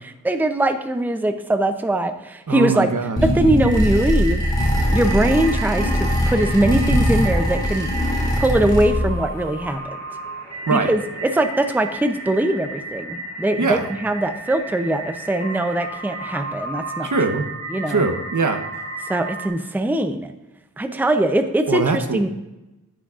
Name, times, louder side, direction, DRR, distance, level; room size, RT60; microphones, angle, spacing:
voice 1, 0.0-2.9 3.2-4.4 4.9-7.9 8.4-10.0 10.7-17.1 17.7-18.0 19.0-20.3 20.8-22.3, right 1 dB, 5° right, 7 dB, 0.6 m, -21 dB
voice 2, 2.5-3.2 10.7-10.9 13.6-13.8 17.0-17.4 17.9-18.6 21.7-22.3, right 4 dB, 65° right, 6 dB, 1.0 m, -21 dB
sound 1, 3.2-9.2, equal, 15° left, 2.7 m, -21 dB
sound 2, 3.6-19.5, right 2 dB, 45° right, 2.8 m, -33 dB
10.0 x 9.8 x 2.5 m, 0.98 s
wide cardioid pair, 80°, 32 cm